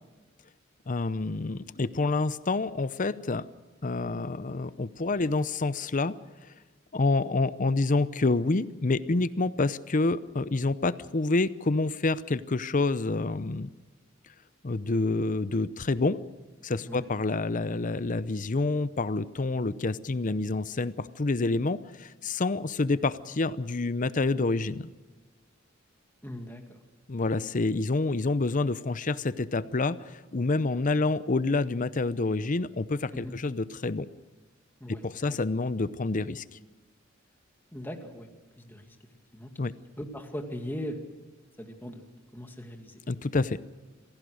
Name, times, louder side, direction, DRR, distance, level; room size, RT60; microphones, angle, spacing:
voice 1, 0.9-3.4 3.8-6.1 6.9-13.7 14.6-16.2 16.6-24.9 27.1-34.1 34.9-36.4 39.6-39.7 43.1-43.6, left 3 dB, 40° left, 16 dB, 0.7 m, -28 dB
voice 2, 26.2-26.8 33.2-33.4 34.8-35.4 37.7-38.3 38.6-39.0 39.3-39.7 40.0-41.0 41.6-43.0, equal, 10° left, 4 dB, 2.3 m, -40 dB
26.5 x 17.0 x 6.4 m, 1.2 s
head